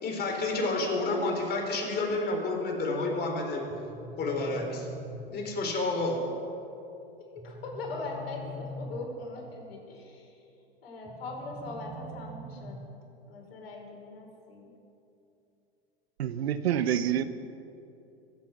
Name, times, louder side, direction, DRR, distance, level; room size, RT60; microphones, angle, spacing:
voice 1, 0.0-3.6 4.2-4.9 5.3-6.2, left 2 dB, 30° left, 1 dB, 4.0 m, -30 dB
sound 1, 3.7-5.7 7.4-9.4 11.1-13.1, equal, 10° right, 1.4 m, -43 dB
voice 2, 7.4-10.4 10.8-12.8 13.3-14.7, left 2 dB, 70° left, 0 dB, 4.4 m, -40 dB
voice 3, 16.2-17.2, right 10 dB, 80° right, 13 dB, 0.8 m, -27 dB
24.0 x 8.4 x 6.2 m, 2.7 s
hypercardioid pair, 100°, 31 cm